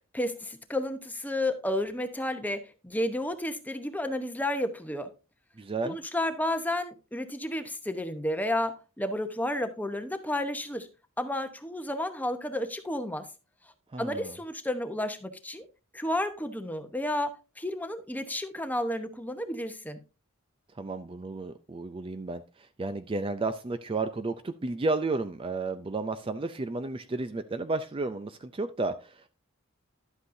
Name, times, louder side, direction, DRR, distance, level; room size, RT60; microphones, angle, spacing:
voice 1, 0.1-5.1 5.8-10.9 11.2-13.3 14.0-15.7 15.9-20.0, left 1 dB, 10° left, 0.9 m, -31 dB
voice 2, 5.6-6.0 13.9-14.3 20.8-29.3, right 3 dB, 25° right, 0.4 m, -32 dB
11.5 x 8.2 x 2.6 m
head